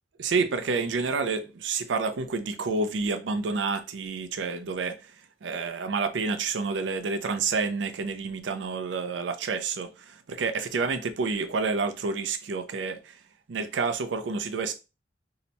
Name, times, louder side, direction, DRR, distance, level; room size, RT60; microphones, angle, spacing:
voice 1, 0.2-5.1 5.4-13.2 13.5-14.7, right 4 dB, 85° right, 0.4 m, -29 dB
2.8 x 2.1 x 3.9 m
head